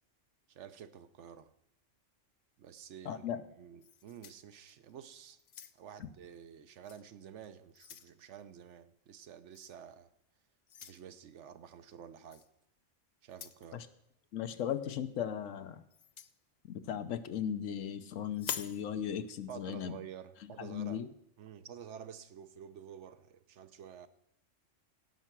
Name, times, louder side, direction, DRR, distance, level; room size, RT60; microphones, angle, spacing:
voice 1, 0.5-1.5 2.6-5.4 5.8-10.1 10.8-12.4 13.2-13.9 19.5-21.0 21.4-24.1, right 8 dB, 70° right, 1.0 m, -50 dB
voice 2, 3.1-3.4 13.7-13.8 14.3-15.8 16.7-19.9 20.6-21.1, left 9 dB, 85° left, 1.1 m, -37 dB
sound 1, 3.8-4.9 5.4-6.0 6.8-7.0 7.4-8.1 9.5-9.8 10.7-11.0 12.3-12.5 13.3-13.7 15.9-16.3 18.3-18.8, left 8 dB, 60° left, 0.4 m, -44 dB
16.5 x 5.6 x 6.0 m
omnidirectional pair, 1.3 m